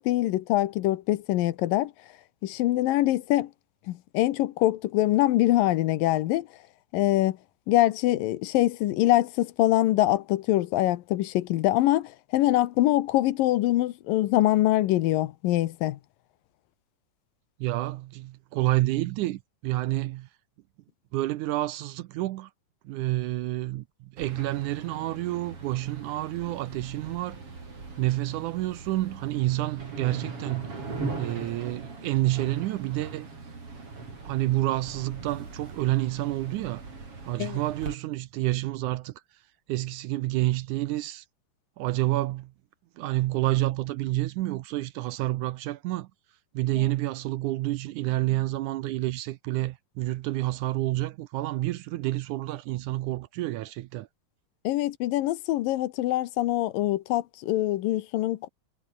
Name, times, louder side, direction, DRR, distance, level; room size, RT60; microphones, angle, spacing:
voice 1, 0.0-1.9 2.4-3.5 3.9-6.5 6.9-7.4 7.7-16.0 37.4-37.6 46.7-46.8 54.6-58.5, left 15 dB, 85° left, 2.7 m, -24 dB
voice 2, 17.6-20.3 21.1-22.5 22.9-27.4 28.0-30.7 31.2-33.3 34.2-36.8 37.2-39.1 39.7-41.3 41.8-42.5 43.0-46.1 46.5-54.1, right 16 dB, 75° right, 2.0 m, -29 dB
sound 1, 24.2-38.0, right 3 dB, 40° right, 6.2 m, -40 dB
omnidirectional pair, 3.9 m